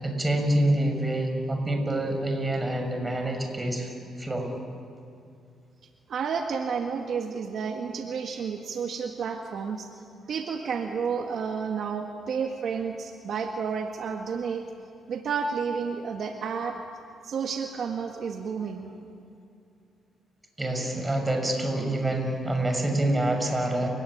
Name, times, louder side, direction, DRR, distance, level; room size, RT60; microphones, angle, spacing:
voice 1, 0.0-3.9 4.2-4.5 20.6-23.9, right 1 dB, 15° right, 4 dB, 6.3 m, -26 dB
voice 2, 6.1-9.9 10.3-14.6 15.1-16.8 17.2-18.9, right 6 dB, 60° right, 3 dB, 1.8 m, -31 dB
30.0 x 17.5 x 10.0 m, 2.5 s
cardioid pair, 90°, 0 cm